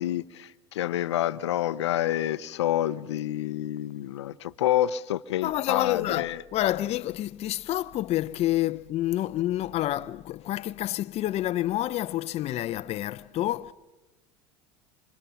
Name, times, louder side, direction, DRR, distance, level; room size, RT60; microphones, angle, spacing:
voice 1, 0.0-6.4, left 12 dB, 90° left, 0.9 m, -28 dB
voice 2, 5.4-13.7, left 14 dB, 45° left, 0.7 m, -28 dB
29.5 x 27.0 x 5.8 m
hypercardioid pair, 90°, 14 cm